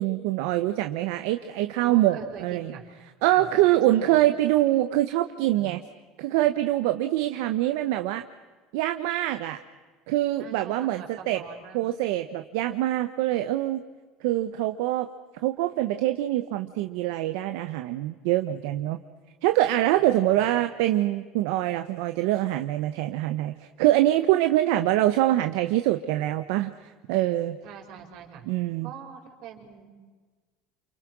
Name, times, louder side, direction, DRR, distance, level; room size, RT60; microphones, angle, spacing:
voice 1, 0.0-2.7 3.2-5.8 6.2-8.2 8.7-9.6 10.1-11.4 11.7-13.8 14.2-15.1 15.4-19.0 19.4-26.7 27.1-27.6 28.5-28.9, right 15 dB, 65° right, 8 dB, 1.1 m, -24 dB
voice 2, 1.8-2.8 3.3-4.2 10.4-11.8 19.5-20.7 27.6-28.5 28.8-29.9, right 8 dB, 50° right, 1 dB, 5.5 m, -44 dB
29.5 x 28.5 x 6.2 m, 1.4 s
cardioid pair, 175°, 0 cm